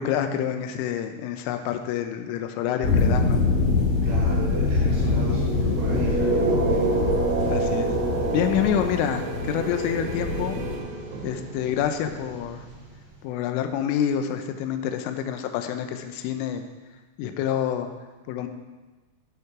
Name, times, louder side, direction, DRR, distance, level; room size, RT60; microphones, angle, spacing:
voice 1, 0.0-3.4 7.5-7.9 8.3-10.6 11.2-12.7 13.2-16.6 17.2-17.9 18.3-18.5, left 9 dB, 85° left, 7 dB, 3.3 m, -27 dB
sound 1, 2.8-10.8, left 3 dB, 55° left, 1.8 m, -25 dB
voice 2, 4.0-6.8, right 3 dB, 90° right, -6 dB, 4.4 m, -38 dB
sound 2, 4.9-13.0, right 3 dB, 45° right, 5.0 m, -28 dB
sound 3, 8.1-12.8, right 5 dB, 75° right, 3.1 m, -42 dB
14.5 x 5.6 x 4.8 m, 1.2 s
omnidirectional pair, 5.7 m